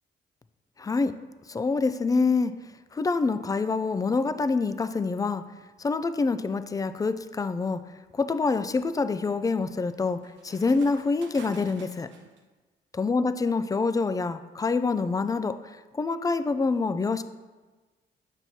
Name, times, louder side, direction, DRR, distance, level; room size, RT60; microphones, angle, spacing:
voice 1, 0.8-1.1 1.5-2.5 2.9-5.4 5.8-7.8 8.1-10.2 10.4-12.1 12.9-17.2, left 4 dB, 20° left, 12 dB, 0.3 m, -26 dB
sound 1, 7.1-7.2 7.8-12.4, right 5 dB, 70° right, 0.8 m, -51 dB
7.1 x 5.9 x 2.7 m, 1.3 s
cardioid pair, 90°, 20 cm